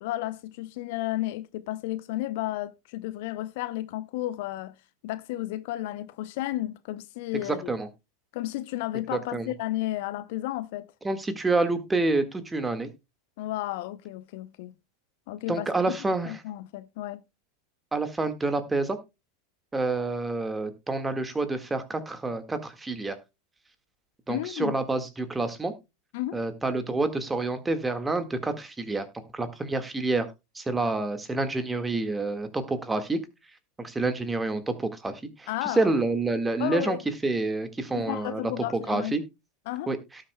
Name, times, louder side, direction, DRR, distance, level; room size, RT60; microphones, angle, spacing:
voice 1, 0.0-4.7 5.0-7.7 8.3-10.9 13.4-14.7 15.3-16.0 16.3-17.2 24.3-24.7 26.1-26.4 35.5-35.9 36.6-37.0 38.0-39.1 39.7-39.9, left 16 dB, 55° left, 0.6 m, -32 dB
voice 2, 7.5-7.9 9.1-9.5 11.0-12.9 15.5-16.4 17.9-19.0 19.7-23.2 24.3-25.7 26.3-29.1 29.3-30.3 30.6-33.2 33.8-37.0 37.2-39.2 39.9-40.0, right 3 dB, 10° right, 1.7 m, -28 dB
17.5 x 6.5 x 2.2 m
figure-of-eight pair, 90°, 0 cm